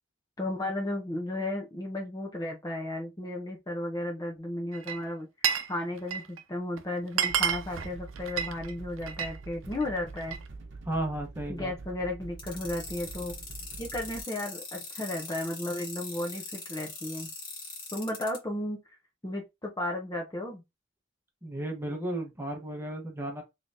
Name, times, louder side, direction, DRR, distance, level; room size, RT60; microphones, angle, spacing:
voice 1, 0.4-5.3 5.7-10.4 11.5-13.3 13.8-17.3 17.9-18.8 19.2-20.6, left 1 dB, 20° left, 0.7 m, -34 dB
Glass, 4.7-5.7 6.0-6.4 6.8-6.9 7.1-9.4 9.7-10.5, right 8 dB, 90° right, 0.6 m, -30 dB
sound 1, 7.3-14.2, right 3 dB, 60° right, 0.9 m, -45 dB
voice 2, 10.9-11.7 21.4-23.4, right 1 dB, 10° right, 1.0 m, -34 dB
sound 2, 12.4-18.4, left 4 dB, 45° left, 1.9 m, -41 dB
3.8 x 3.3 x 2.6 m
head